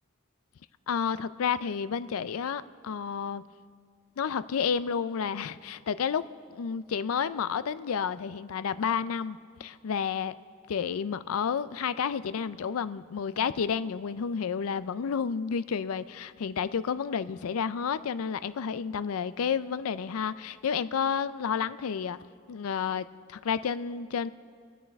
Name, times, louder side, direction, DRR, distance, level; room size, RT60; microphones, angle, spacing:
voice 1, 0.9-3.4 4.2-6.3 6.5-10.3 10.7-22.2 22.5-24.3, left 7 dB, 90° left, 15 dB, 0.4 m, -30 dB
25.0 x 8.4 x 3.5 m, 2.1 s
head